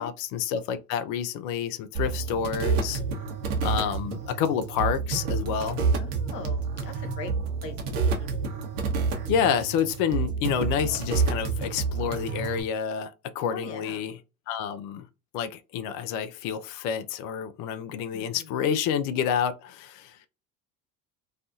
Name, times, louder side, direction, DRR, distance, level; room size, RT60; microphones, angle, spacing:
voice 1, 0.0-3.0 3.6-5.8 9.3-13.1 13.4-14.2 14.5-15.1 15.3-20.2, left 8 dB, 45° left, 0.4 m, -28 dB
sound 1, 1.9-12.6, right 5 dB, 55° right, 1.0 m, -29 dB
voice 2, 6.0-7.3 7.6-8.3 9.2-9.3 13.5-14.0 18.1-18.3, left 4 dB, 85° left, 0.7 m, -41 dB
2.6 x 2.4 x 2.4 m
hypercardioid pair, 75°, 47 cm